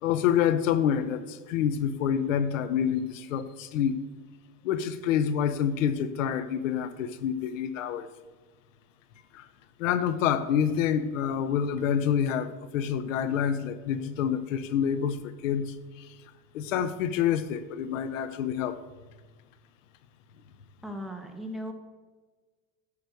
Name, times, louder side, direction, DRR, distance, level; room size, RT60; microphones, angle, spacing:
voice 1, 0.0-4.0 4.6-8.1 9.3-9.5 9.8-16.1 16.5-18.8, left 8 dB, 85° left, 13 dB, 0.8 m, -27 dB
voice 2, 20.8-21.7, equal, ahead, 3 dB, 1.3 m, -37 dB
9.7 x 6.6 x 4.6 m, 1.4 s
supercardioid pair, 115°, 38 cm